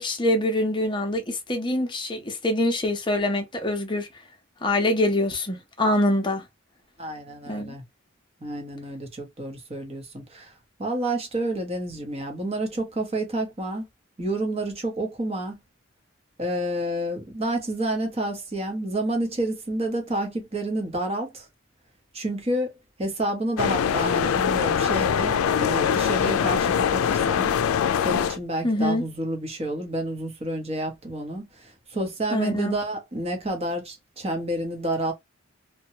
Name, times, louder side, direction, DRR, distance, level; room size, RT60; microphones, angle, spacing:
voice 1, 0.0-4.1 4.6-6.5 7.5-7.7 28.6-29.0 32.3-32.8, left 1 dB, 25° left, 0.7 m, -24 dB
voice 2, 7.0-7.8 8.4-10.5 10.8-13.8 14.2-15.6 16.4-21.5 22.1-22.7 23.0-27.6 28.0-35.1, right 1 dB, 30° right, 0.9 m, -29 dB
sound 1, 23.6-28.4, left 7 dB, 90° left, 0.3 m, -23 dB
2.8 x 2.2 x 2.7 m
head